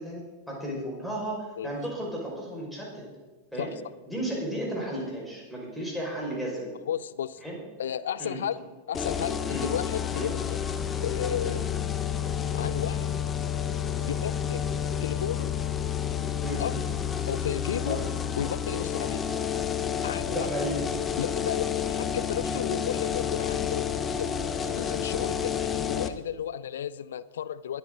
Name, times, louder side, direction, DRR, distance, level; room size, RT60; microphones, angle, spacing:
voice 1, 0.0-3.0 3.5-3.7 4.1-6.7 7.4-7.6 8.2-8.4 9.5-9.6 10.1-10.3 11.4-11.6 16.4-16.6 17.9-18.0 20.3-20.8, right 1 dB, ahead, -4 dB, 5.4 m, -34 dB
voice 2, 6.8-7.4 7.8-8.6 8.9-10.6 11.0-11.6 12.5-13.3 14.1-14.6 15.0-15.5 16.5-16.8 17.3-18.0 18.4-19.2 20.0-20.5 21.2-23.9 24.2-27.8, left 9 dB, 65° left, 18 dB, 0.5 m, -33 dB
sound 1, 8.9-26.1, left 8 dB, 20° left, 0.8 m, -30 dB
21.5 x 9.2 x 3.9 m, 1.3 s
figure-of-eight pair, 90°, 0 cm